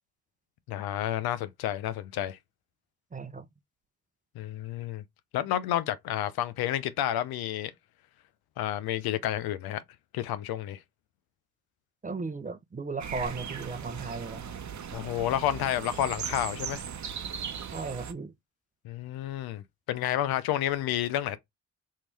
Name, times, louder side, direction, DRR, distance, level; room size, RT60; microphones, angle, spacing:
voice 1, 0.7-2.4 4.4-5.0 5.3-7.7 8.6-9.8 10.1-10.8 14.9-16.8 18.8-21.4, left 12 dB, 80° left, 0.5 m, -30 dB
voice 2, 3.1-3.5 12.0-14.5 17.7-18.3, right 4 dB, 20° right, 0.5 m, -36 dB
sound 1, 13.0-18.1, right 7 dB, 50° right, 0.8 m, -38 dB
2.9 x 2.7 x 3.3 m
supercardioid pair, 45°, 37 cm